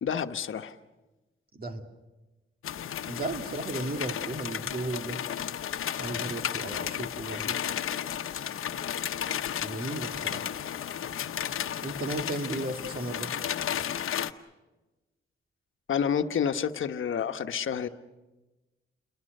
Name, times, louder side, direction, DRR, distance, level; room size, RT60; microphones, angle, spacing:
voice 1, 0.0-0.8 7.3-7.5 15.9-17.9, left 7 dB, 70° left, 8 dB, 1.2 m, -29 dB
voice 2, 1.5-1.8 3.1-5.2 6.0-7.6 9.6-10.5 11.8-13.3, right 2 dB, 45° right, 5 dB, 2.5 m, -35 dB
sound 1, 2.6-14.3, left 9 dB, 90° left, 0.9 m, -33 dB
29.5 x 22.5 x 6.6 m, 1.1 s
cardioid pair, 100°, 21 cm